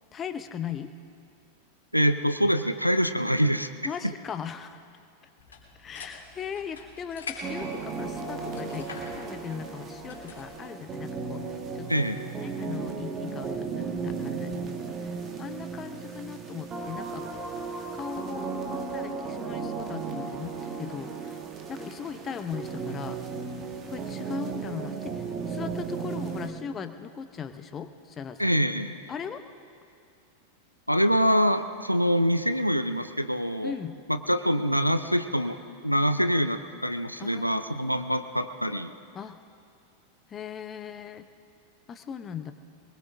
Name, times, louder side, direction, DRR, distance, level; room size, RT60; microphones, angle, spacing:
voice 1, 0.1-0.9 3.8-4.8 5.8-11.4 11.7-12.0 12.3-15.0 15.4-17.4 17.9-20.5 20.8-21.3 21.7-23.2 23.9-28.6 29.1-29.4 33.6-34.0 37.2-37.6 39.1-39.4 40.3-41.3 41.9-42.5, left 7 dB, 25° left, 10 dB, 0.8 m, -38 dB
voice 2, 1.9-3.7 11.9-12.3 28.4-29.0 30.9-33.7 34.1-35.6 35.8-38.9, equal, 90° left, 10 dB, 0.5 m, -25 dB
sound 1, 5.4-10.6, left 4 dB, 65° left, 3.1 m, -44 dB
sound 2, 7.4-26.5, right 5 dB, 25° right, 1.6 m, -35 dB
24.0 x 21.0 x 2.6 m, 2.4 s
figure-of-eight pair, 90°, 0 cm